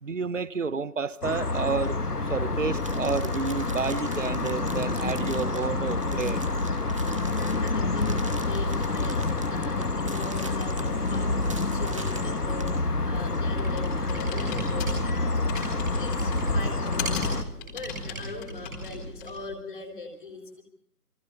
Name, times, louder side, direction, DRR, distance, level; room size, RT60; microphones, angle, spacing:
voice 1, 0.0-2.0 2.3-6.4, right 5 dB, 55° right, 0.9 m, -30 dB
sound 1, 1.2-17.4, left 3 dB, 75° left, 1.7 m, -28 dB
sound 2, 2.8-12.8, right 2 dB, 20° right, 1.5 m, -45 dB
voice 2, 7.4-20.6, left 3 dB, 35° left, 3.8 m, -41 dB
Computer keyboard, 12.5-19.5, left 1 dB, 10° left, 3.3 m, -35 dB
28.5 x 24.0 x 4.2 m
figure-of-eight pair, 165°, 47 cm